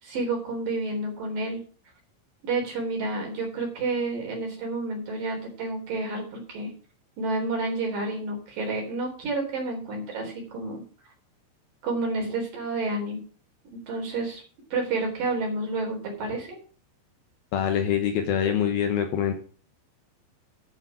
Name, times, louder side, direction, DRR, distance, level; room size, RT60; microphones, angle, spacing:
voice 1, 0.0-1.6 2.4-6.7 7.2-10.8 11.8-13.2 13.7-14.4 14.7-16.6, right 2 dB, 50° right, 1 dB, 5.0 m, -30 dB
voice 2, 17.5-19.3, left 9 dB, 80° left, 6 dB, 2.1 m, -24 dB
11.5 x 6.8 x 6.1 m, 0.41 s
omnidirectional pair, 5.6 m